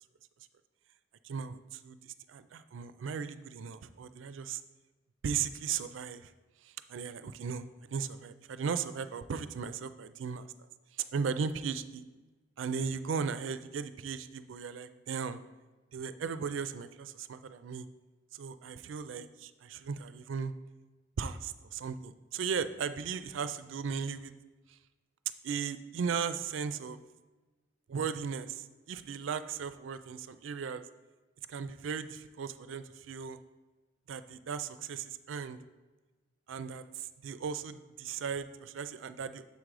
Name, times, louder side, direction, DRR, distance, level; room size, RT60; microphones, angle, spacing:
voice 1, 1.2-4.6 5.2-6.3 6.6-7.6 7.9-10.5 11.1-12.0 12.6-15.4 15.9-17.9 18.3-20.5 21.2-24.3 25.4-27.0 27.9-30.8 31.5-33.4 34.1-35.6 36.5-39.4, right 6 dB, 85° right, 12 dB, 0.4 m, -37 dB
7.0 x 3.7 x 4.7 m, 1.2 s
head